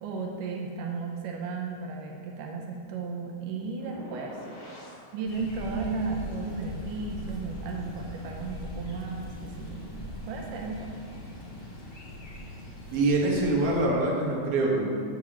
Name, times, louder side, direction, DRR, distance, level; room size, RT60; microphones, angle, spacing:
voice 1, 0.0-4.4 5.1-9.9 10.3-10.9, right 4 dB, 85° right, 1 dB, 2.4 m, -34 dB
sound 1, 3.8-5.1, equal, 85° left, 4.4 m, -45 dB
sound 2, 5.2-13.8, left 1 dB, 50° left, 0.6 m, -40 dB
voice 2, 12.9-14.8, right 2 dB, 55° right, -3 dB, 2.3 m, -24 dB
13.5 x 7.2 x 3.1 m, 2.2 s
omnidirectional pair, 3.7 m